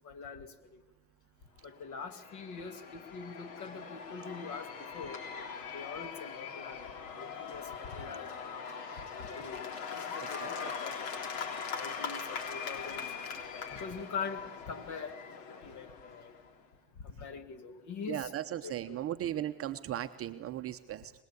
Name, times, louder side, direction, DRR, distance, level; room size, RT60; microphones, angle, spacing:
voice 1, 0.0-0.8 1.6-5.2 5.7-6.9 7.2-8.3 9.0-11.0 11.8-13.1 13.5-15.2 15.5-16.3 17.0-18.3 18.6-19.1, left 5 dB, 40° left, 9 dB, 2.2 m, -43 dB
Cheering / Applause / Crowd, 1.8-16.5, left 6 dB, 60° left, 3.6 m, -41 dB
voice 2, 18.1-21.1, right 12 dB, 30° right, 8 dB, 0.8 m, -37 dB
24.5 x 20.5 x 8.4 m, 1.1 s
supercardioid pair, 120°, 46 cm